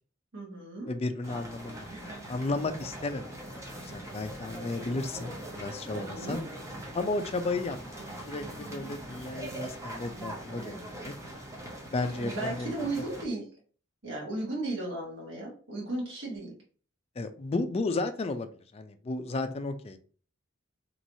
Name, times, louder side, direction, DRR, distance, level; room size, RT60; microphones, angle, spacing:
voice 1, 0.3-0.9 5.9-6.4 12.1-13.5 14.0-16.5, right 2 dB, 70° right, -3 dB, 1.5 m, -35 dB
voice 2, 0.9-6.4 6.9-11.1 11.9-12.7 17.2-20.0, left 2 dB, 30° left, 8 dB, 0.4 m, -34 dB
sound 1, 1.2-13.2, right 1 dB, 15° right, 0.7 m, -42 dB
3.1 x 3.0 x 2.6 m, 0.41 s
head